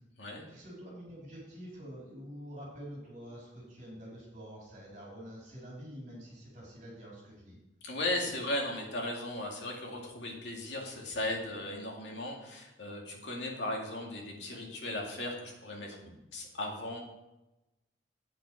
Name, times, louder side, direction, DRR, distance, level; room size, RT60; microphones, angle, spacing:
voice 1, 0.5-7.6 16.0-16.2, equal, 45° right, -4 dB, 4.0 m, -47 dB
voice 2, 7.8-16.0 16.3-17.0, left 1 dB, 70° left, 0 dB, 2.2 m, -36 dB
8.8 x 8.4 x 4.7 m, 0.96 s
head